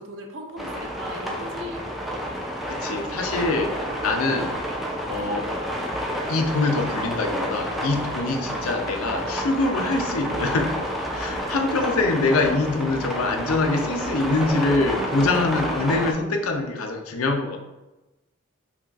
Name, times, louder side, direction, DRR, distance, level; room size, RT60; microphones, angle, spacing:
voice 1, 0.0-1.9, equal, 60° right, 2 dB, 0.6 m, -38 dB
sound 1, 0.6-16.1, equal, ahead, 0.3 m, -29 dB
voice 2, 2.7-4.6 5.1-5.5 6.3-10.7 11.1-17.6, left 3 dB, 90° left, 4 dB, 0.5 m, -24 dB
5.5 x 2.3 x 2.4 m, 1.0 s
head